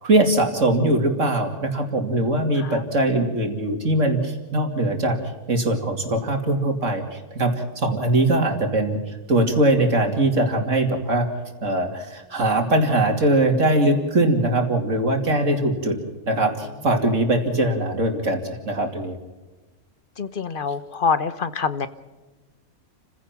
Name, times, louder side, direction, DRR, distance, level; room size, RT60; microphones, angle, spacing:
voice 1, 0.0-5.2 5.5-11.3 11.6-16.0 16.3-19.2, right 1 dB, 60° right, 4 dB, 3.0 m, -21 dB
voice 2, 20.2-21.9, left 5 dB, 40° left, 13 dB, 1.0 m, -25 dB
30.0 x 16.0 x 6.0 m, 1.2 s
omnidirectional pair, 1.5 m